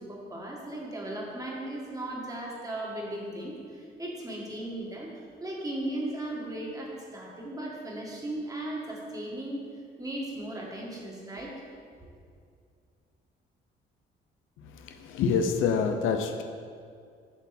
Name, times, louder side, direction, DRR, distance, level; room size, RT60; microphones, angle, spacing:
voice 1, 0.0-5.1 5.4-9.6 10.0-11.5, right 1 dB, 20° right, -3 dB, 1.8 m, -36 dB
voice 2, 14.6-16.4, left 6 dB, 85° left, 6 dB, 0.6 m, -27 dB
7.3 x 6.0 x 4.3 m, 2.2 s
cardioid pair, 90°, 20 cm